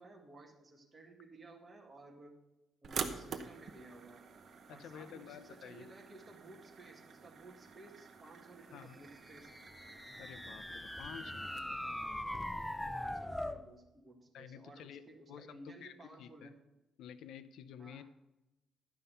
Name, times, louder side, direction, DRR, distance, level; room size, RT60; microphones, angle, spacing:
voice 1, 0.0-2.4 2.8-4.3 4.7-9.6 12.9-16.6 17.8-18.0, right 2 dB, 20° right, 1 dB, 1.8 m, -56 dB
sound 1, 2.8-11.6, right 5 dB, 45° right, 0.9 m, -47 dB
voice 2, 4.7-5.9 8.7-9.0 10.2-11.8 14.3-15.0 15.3-16.5 17.0-18.0, left 9 dB, 75° left, 14 dB, 0.5 m, -51 dB
sound 2, 9.3-13.6, left 1 dB, 5° left, 0.4 m, -41 dB
11.5 x 5.6 x 6.7 m, 0.98 s
cardioid pair, 155°, 0 cm